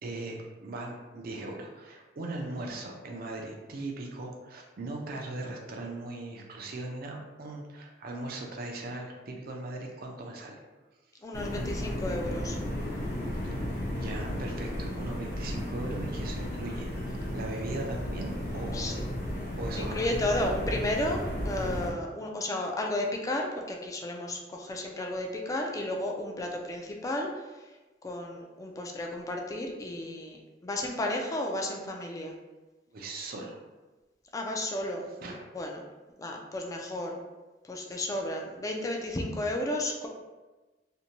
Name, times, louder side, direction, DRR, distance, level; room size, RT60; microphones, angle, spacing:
voice 1, 0.0-10.6 13.4-13.5 13.9-19.0 19.6-20.1 32.9-33.6 35.2-35.4, right 2 dB, 55° right, 1 dB, 0.4 m, -39 dB
voice 2, 11.2-12.6 18.7-19.0 19.8-27.7 28.0-32.4 34.3-35.8 36.2-37.2 37.6-40.1, left 1 dB, 20° left, 1 dB, 0.3 m, -33 dB
sound 1, 11.3-21.9, left 1 dB, 55° left, 0.6 m, -34 dB
2.6 x 2.1 x 2.8 m, 1.2 s
head